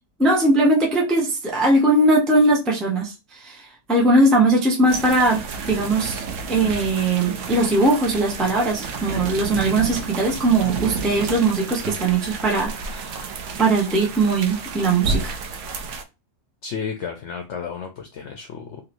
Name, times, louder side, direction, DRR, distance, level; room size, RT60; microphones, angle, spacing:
voice 1, 0.2-6.2 6.5-13.2 13.6-15.4, right 2 dB, ahead, 0.4 m, -20 dB
sound 1, 4.9-16.0, right 5 dB, 65° right, 0.8 m, -31 dB
voice 2, 16.6-18.8, left 6 dB, 65° left, 0.8 m, -32 dB
3.0 x 2.8 x 2.6 m
omnidirectional pair, 1.5 m